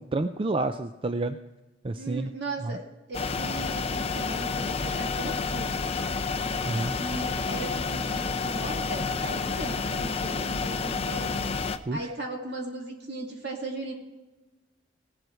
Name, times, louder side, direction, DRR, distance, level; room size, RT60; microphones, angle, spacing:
voice 1, 0.0-1.4 1.8-2.3 2.6-2.8 6.6-6.9 11.9-12.1, right 2 dB, 30° right, 9 dB, 0.4 m, -29 dB
voice 2, 2.0-6.1 7.0-11.4 11.9-13.9, right 2 dB, 60° right, 0 dB, 2.5 m, -37 dB
sound 1, 3.1-11.8, left 4 dB, 30° left, 0.6 m, -30 dB
19.0 x 7.8 x 4.6 m, 1.1 s
head